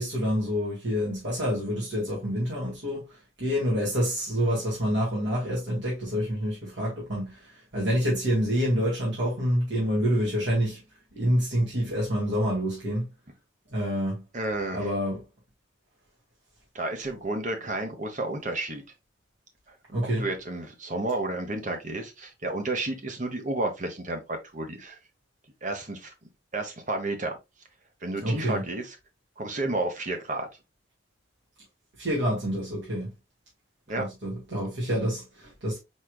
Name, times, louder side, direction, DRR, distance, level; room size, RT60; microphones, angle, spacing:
voice 1, 0.0-10.8 11.1-13.1 13.7-14.2 14.7-15.2 19.9-20.3 28.2-28.6 32.0-33.1 34.0-35.8, equal, 65° right, 2.1 m, -27 dB
voice 2, 14.3-14.9 16.7-18.8 20.2-25.0 25.6-27.4 28.0-29.0 29.4-30.5 33.9-34.1, right 2 dB, 40° right, 1.0 m, -31 dB
4.8 x 4.3 x 2.3 m
head